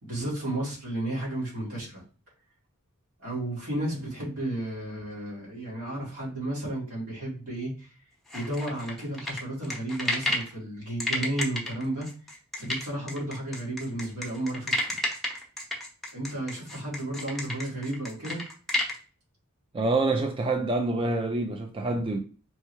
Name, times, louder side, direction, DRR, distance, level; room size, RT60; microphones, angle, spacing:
voice 1, 0.0-2.0 3.2-7.9 8.3-12.1 12.6-14.9 16.1-18.4, right 1 dB, 75° right, 2.3 m, -33 dB
sound 1, 8.3-10.5 11.0-19.0, left 1 dB, ahead, 0.8 m, -31 dB
voice 2, 19.7-22.2, right 2 dB, 25° right, 0.3 m, -26 dB
4.4 x 3.3 x 3.0 m
head